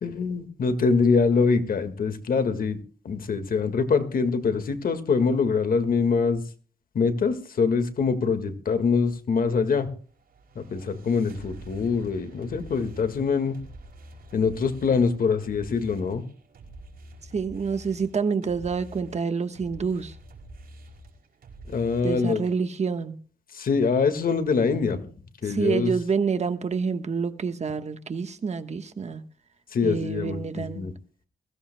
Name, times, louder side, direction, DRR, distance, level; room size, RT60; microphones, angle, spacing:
voice 1, 0.0-2.8 3.1-6.4 6.9-9.9 10.6-13.6 14.3-16.2 21.7-22.5 23.5-25.1 25.4-25.9 29.7-30.9, left 5 dB, 70° left, 8 dB, 1.9 m, -24 dB
sound 1, 9.9-22.4, right 1 dB, 80° right, 5.2 m, -47 dB
voice 2, 17.3-20.1 22.0-23.2 25.5-29.2 29.8-30.8, right 5 dB, 45° right, 8 dB, 1.3 m, -27 dB
21.5 x 16.5 x 2.3 m, 0.42 s
wide cardioid pair, 110°, 15 cm